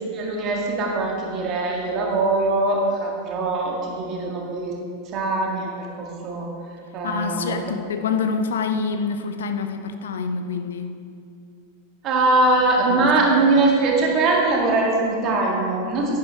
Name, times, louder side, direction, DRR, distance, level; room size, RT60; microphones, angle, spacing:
voice 1, 0.1-4.7 5.1-6.5 6.9-7.6 12.0-16.2, right 2 dB, 35° right, -1 dB, 2.0 m, -22 dB
voice 2, 7.0-11.0 12.8-13.6, left 5 dB, 65° left, 8 dB, 0.6 m, -27 dB
10.5 x 10.5 x 3.5 m, 2.4 s
figure-of-eight pair, 90°, 0 cm